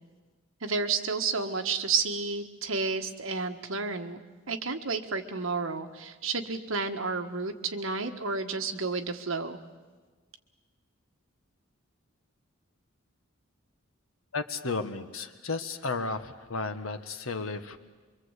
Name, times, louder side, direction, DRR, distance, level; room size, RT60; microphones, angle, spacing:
voice 1, 0.6-4.2 4.5-9.6, right 4 dB, 80° right, 6 dB, 1.6 m, -31 dB
voice 2, 14.3-17.8, left 3 dB, 80° left, 9 dB, 1.5 m, -33 dB
24.5 x 24.0 x 8.2 m, 1.4 s
head